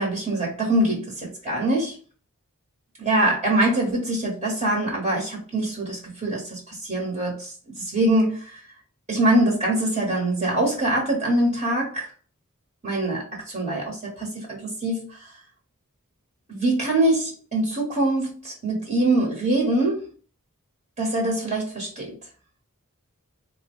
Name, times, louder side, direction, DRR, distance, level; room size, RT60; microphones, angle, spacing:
voice 1, 0.0-2.0 3.0-8.6 9.1-12.1 12.8-15.2 16.5-20.1 21.0-22.2, right 1 dB, 35° right, 1.2 m, -24 dB
4.4 x 2.1 x 3.1 m
head